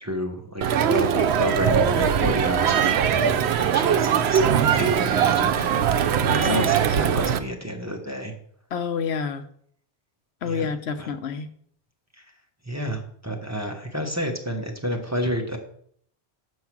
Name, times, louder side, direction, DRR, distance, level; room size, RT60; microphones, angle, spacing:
voice 1, 0.0-5.9 6.3-8.3 10.5-10.7 11.0-11.1 12.7-15.6, equal, 15° right, 2 dB, 0.9 m, -30 dB
Crowd, 0.6-7.4, right 8 dB, 75° right, 0.8 m, -21 dB
voice 2, 6.2-7.0 8.7-9.4 10.4-11.5, left 5 dB, 75° left, 9 dB, 0.9 m, -29 dB
7.5 x 4.7 x 5.9 m, 0.63 s
omnidirectional pair, 1.1 m